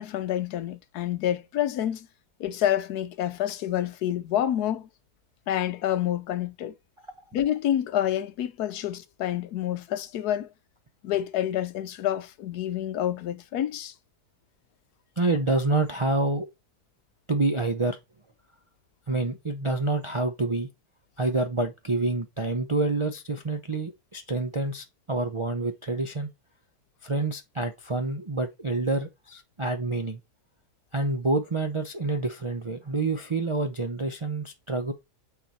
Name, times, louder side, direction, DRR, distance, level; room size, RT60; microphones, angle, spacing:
voice 1, 0.0-2.1 2.4-4.9 5.5-6.7 7.3-10.5 11.0-13.9, left 11 dB, 80° left, 1.2 m, -28 dB
voice 2, 15.2-16.5 17.3-18.0 19.1-20.7 21.2-26.3 27.0-30.2 30.9-34.9, right 2 dB, 45° right, 0.4 m, -27 dB
9.1 x 3.9 x 4.2 m
omnidirectional pair, 1.7 m